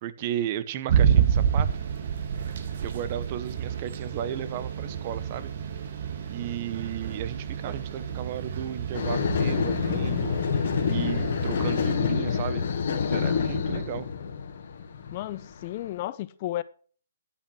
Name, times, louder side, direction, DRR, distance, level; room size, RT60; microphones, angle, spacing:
voice 1, 0.0-1.7 2.8-5.5 6.3-10.4 10.8-14.1, right 11 dB, 35° right, 0.8 m, -34 dB
sound 1, 0.9-12.0, right 8 dB, 55° right, 1.7 m, -29 dB
sound 2, 8.9-15.8, left 6 dB, 55° left, 1.9 m, -27 dB
voice 2, 15.1-16.6, left 14 dB, 35° left, 0.5 m, -33 dB
11.5 x 6.1 x 6.1 m
hypercardioid pair, 145°, 0 cm